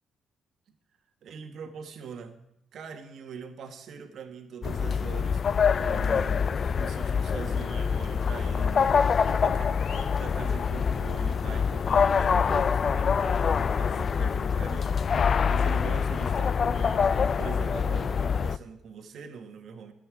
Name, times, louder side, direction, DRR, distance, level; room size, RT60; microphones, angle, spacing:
voice 1, 1.2-2.4 2.7-19.9, right 6 dB, 65° right, 6 dB, 1.5 m, -42 dB
sound 1, 4.6-18.6, left 6 dB, 45° left, 0.4 m, -25 dB
sound 2, 7.7-14.3, left 5 dB, 80° left, 2.0 m, -56 dB
11.0 x 6.9 x 9.0 m, 0.78 s
cardioid pair, 90°, 0 cm